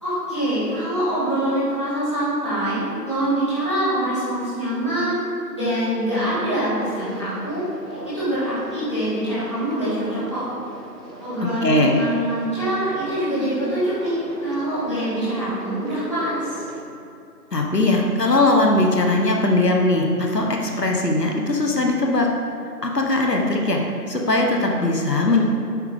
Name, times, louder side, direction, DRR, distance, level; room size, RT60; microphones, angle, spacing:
voice 1, 0.0-5.2 5.5-7.6 8.1-10.4 11.2-16.6, right 1 dB, 20° left, -13 dB, 2.0 m, -24 dB
Conversation, 6.8-16.8, equal, 90° right, 1.8 m, -39 dB
voice 2, 11.6-12.0 17.5-22.3 22.8-23.8 24.1-25.4, left 2 dB, 75° left, 1 dB, 1.3 m, -20 dB
8.3 x 4.9 x 5.1 m, 2.6 s
figure-of-eight pair, 170°, 49 cm